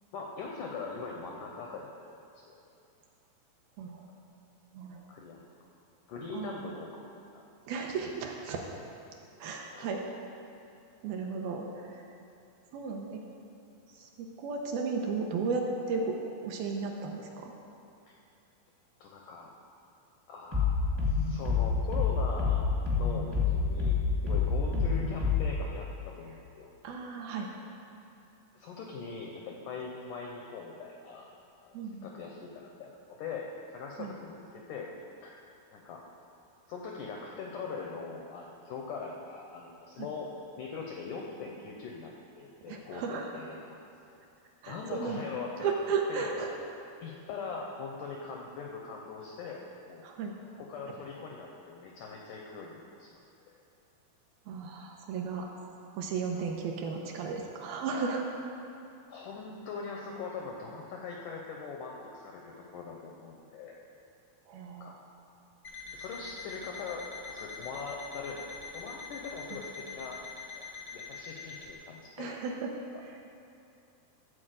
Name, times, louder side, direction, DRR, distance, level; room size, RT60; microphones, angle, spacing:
voice 1, 0.1-2.1 2.5-2.6 5.1-5.4 6.1-7.1 7.3-7.4 9.7-9.9 18.1-18.2 19.0-19.5 20.3-22.7 23.0-26.7 28.6-31.3 31.6-34.9 35.2-35.4 35.7-36.0 36.7-40.3 40.6-43.8 44.7-45.7 46.1-46.3 47.0-50.0 50.6-53.2 59.1-63.7 64.8-65.0 65.9-70.2 70.5-70.6 70.9-72.4, left 4 dB, 85° left, -1 dB, 1.8 m, -41 dB
voice 2, 4.7-5.1 6.3-6.8 7.7-8.6 9.4-10.0 11.0-12.0 12.7-13.2 14.0-17.5 26.8-27.5 31.7-32.1 34.0-34.1 40.0-40.1 42.7-43.3 44.6-45.2 45.6-46.5 50.0-50.3 54.5-55.5 55.9-58.3 64.5-65.0 69.5-69.6 72.2-73.2, right 5 dB, 75° right, 1 dB, 2.4 m, -35 dB
sound 1, 20.5-25.5, left 5 dB, 25° right, 0.5 m, -28 dB
Alarm, 65.6-71.7, left 5 dB, 55° left, 0.9 m, -44 dB
13.0 x 4.6 x 7.7 m, 2.7 s
omnidirectional pair, 4.7 m